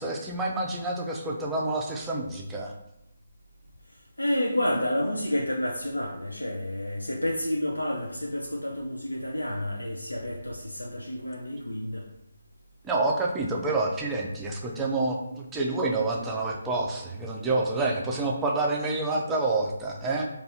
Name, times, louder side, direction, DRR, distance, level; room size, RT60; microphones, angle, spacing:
voice 1, 0.0-2.7 12.8-20.3, right 2 dB, 10° right, -1 dB, 0.5 m, -28 dB
voice 2, 4.2-12.1, left 1 dB, 85° left, 0 dB, 0.5 m, -30 dB
5.3 x 2.4 x 2.7 m, 0.83 s
figure-of-eight pair, 145°, 0 cm